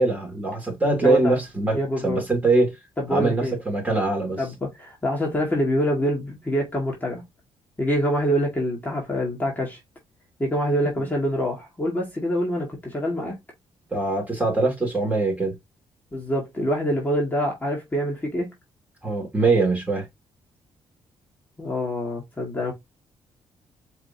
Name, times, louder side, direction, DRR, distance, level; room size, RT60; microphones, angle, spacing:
voice 1, 0.0-1.8 2.0-2.8 3.1-4.4 13.9-15.5 19.0-20.1, right 2 dB, 15° right, 2.6 m, -22 dB
voice 2, 1.0-1.3 1.7-2.2 3.0-3.6 4.4-7.2 7.8-9.8 10.4-13.4 16.1-18.5 21.6-22.7, equal, 15° left, 1.9 m, -25 dB
4.8 x 3.3 x 2.8 m
cardioid pair, 110°, 10 cm